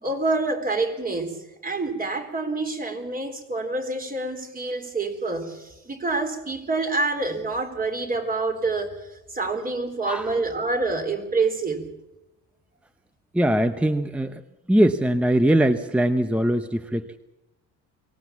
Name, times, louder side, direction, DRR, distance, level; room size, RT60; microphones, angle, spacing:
voice 1, 0.0-11.9, right 3 dB, 25° right, 5 dB, 4.1 m, -27 dB
voice 2, 13.3-14.4 14.7-17.2, right 1 dB, 5° right, 10 dB, 0.8 m, -21 dB
24.0 x 18.5 x 7.3 m, 0.95 s
cardioid pair, 105°, 33 cm